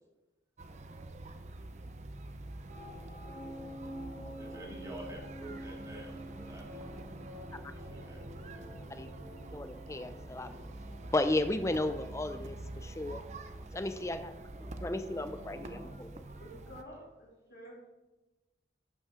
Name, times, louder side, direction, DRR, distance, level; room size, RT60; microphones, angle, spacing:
sound 1, 0.6-16.8, right 2 dB, 40° right, 0.6 m, -47 dB
sound 2, 2.7-15.9, equal, 65° right, 2.2 m, -49 dB
voice 1, 4.3-7.0 7.7-8.3 8.9-9.0 13.9-14.2 16.8-17.1, right 1 dB, 20° right, -2 dB, 2.1 m, -49 dB
voice 2, 9.5-10.6 11.1-13.3 13.7-14.3 14.6-16.3, left 2 dB, 15° left, 9 dB, 0.5 m, -34 dB
voice 3, 16.4-17.8, equal, 85° left, -4 dB, 3.2 m, -51 dB
11.5 x 5.6 x 3.7 m, 1.0 s
head